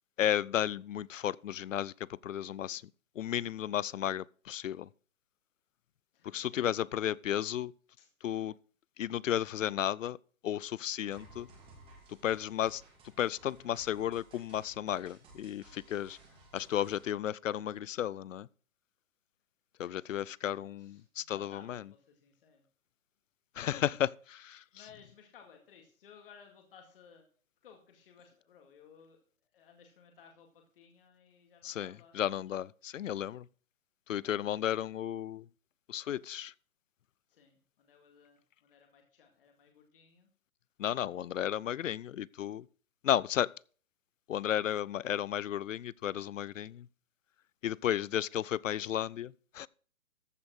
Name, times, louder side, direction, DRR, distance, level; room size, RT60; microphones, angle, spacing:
voice 1, 0.2-2.8 3.2-4.9 6.2-7.7 8.2-8.5 9.0-10.2 10.4-11.5 12.1-12.8 13.2-16.2 16.5-18.5 19.8-21.8 23.6-24.6 31.6-33.5 34.1-35.4 35.9-36.5 40.8-42.7 43.0-43.5 44.3-46.9 47.6-49.7, left 11 dB, 65° left, 0.5 m, -33 dB
voice 2, 6.1-7.4 8.0-8.1 15.9-16.2 19.8-20.5 20.8-22.6 24.7-27.2 27.6-29.2 29.5-32.3 37.3-40.3, left 6 dB, 40° left, 2.2 m, -59 dB
sound 1, 11.1-17.1, right 2 dB, 10° right, 2.1 m, -57 dB
14.0 x 5.2 x 6.3 m
hypercardioid pair, 165°, 42 cm